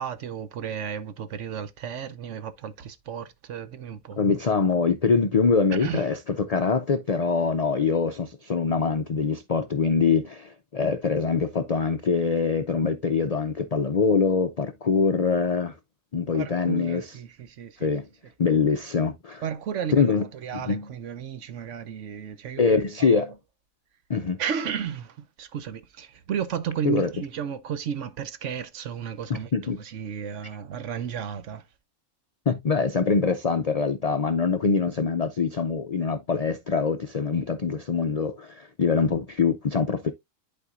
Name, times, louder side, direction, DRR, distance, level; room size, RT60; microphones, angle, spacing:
voice 1, 0.0-4.2 5.7-6.1 16.3-17.9 19.4-22.7 23.0-23.1 24.4-31.7, right 8 dB, 65° right, 1.1 m, -33 dB
voice 2, 4.2-15.8 16.1-17.1 17.8-18.1 18.4-19.4 19.9-20.2 20.5-20.9 22.6-23.3 24.1-24.4 26.8-27.1 29.3-29.8 32.5-40.1, left 5 dB, 65° left, 0.4 m, -24 dB
11.0 x 4.2 x 2.4 m
omnidirectional pair, 1.4 m